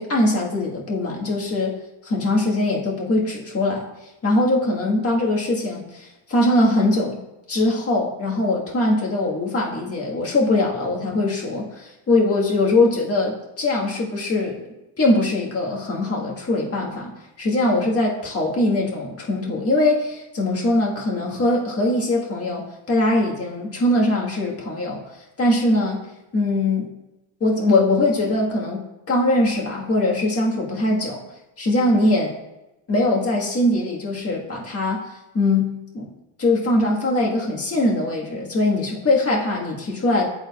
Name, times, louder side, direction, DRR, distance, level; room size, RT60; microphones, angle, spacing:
voice 1, 0.0-1.7 2.0-3.8 4.2-7.2 7.5-14.6 15.0-17.1 17.4-25.0 25.4-26.0 26.3-26.9 27.4-31.2 31.6-32.3 32.9-35.1 35.3-35.7 35.9-36.1 36.4-40.2, left 2 dB, 30° left, -2 dB, 1.6 m, -21 dB
11.5 x 3.9 x 2.4 m, 0.96 s
cardioid pair, 105°, 47 cm